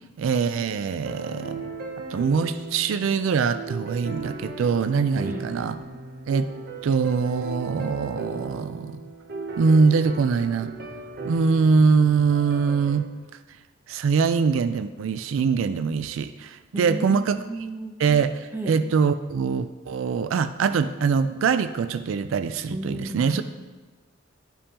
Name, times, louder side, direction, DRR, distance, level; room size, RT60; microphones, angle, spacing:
voice 1, 0.2-1.7 2.1-5.8 6.3-6.5 6.8-9.0 9.6-10.7 11.2-13.1 13.9-17.4 18.0-23.4, right 5 dB, 85° right, 11 dB, 0.3 m, -23 dB
sound 1, 1.0-13.0, right 3 dB, 50° right, 0.8 m, -37 dB
voice 2, 16.7-18.0 18.5-18.8 22.7-23.4, right 1 dB, 10° right, 2 dB, 0.7 m, -34 dB
11.0 x 5.3 x 2.9 m, 1.2 s
head